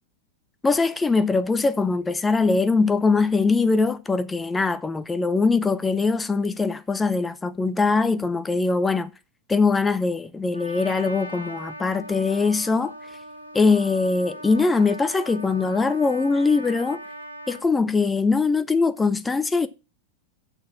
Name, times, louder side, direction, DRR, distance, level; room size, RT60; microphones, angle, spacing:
voice 1, 0.6-9.1 9.5-12.9 13.5-17.0 17.5-19.7, left 4 dB, 10° left, 0.5 m, -22 dB
Trumpet, 10.5-17.7, equal, 90° left, 1.2 m, -39 dB
6.5 x 6.3 x 7.1 m
figure-of-eight pair, 90°, 0 cm